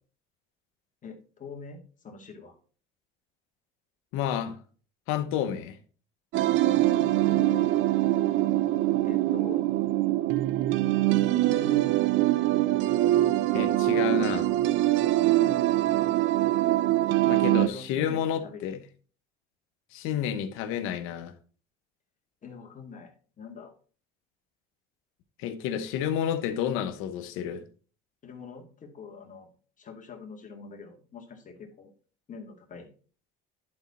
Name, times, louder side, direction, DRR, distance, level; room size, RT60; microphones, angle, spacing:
voice 1, 1.0-2.5 6.9-7.7 9.0-9.6 11.3-11.9 15.4-15.8 17.6-18.8 22.4-23.7 28.2-29.5 29.8-31.9 32.3-32.9, left 4 dB, 35° left, 2.2 m, -44 dB
voice 2, 4.1-4.6 5.1-5.8 13.5-14.5 17.3-18.8 19.9-21.3 25.4-27.6, left 9 dB, 75° left, 1.0 m, -30 dB
sound 1, 6.3-17.7, right 15 dB, 65° right, 0.5 m, -23 dB
11.0 x 4.2 x 4.2 m
supercardioid pair, 95°, 21 cm